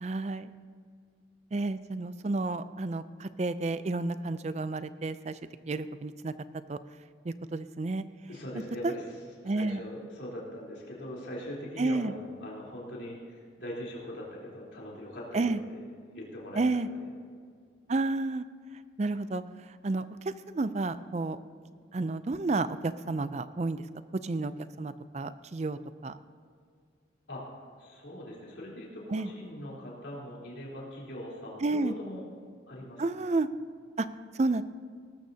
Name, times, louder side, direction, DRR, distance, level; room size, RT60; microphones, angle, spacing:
voice 1, 0.0-0.5 1.5-5.3 5.7-6.3 6.7-6.8 7.3-8.0 9.5-9.8 11.8-12.1 15.3-15.6 16.6-16.9 17.9-18.4 19.0-19.4 19.8-21.4 21.9-23.8 24.2-24.5 24.8-26.1 29.1-29.3 31.6-31.9 33.0-33.5 34.0-34.1 34.4-34.6, right 3 dB, 35° right, 13 dB, 0.4 m, -31 dB
voice 2, 8.3-15.8 16.1-17.1 27.3-27.5 27.8-32.2 32.7-33.0, equal, 70° left, -5 dB, 3.7 m, -41 dB
19.5 x 13.0 x 2.8 m, 2.1 s
head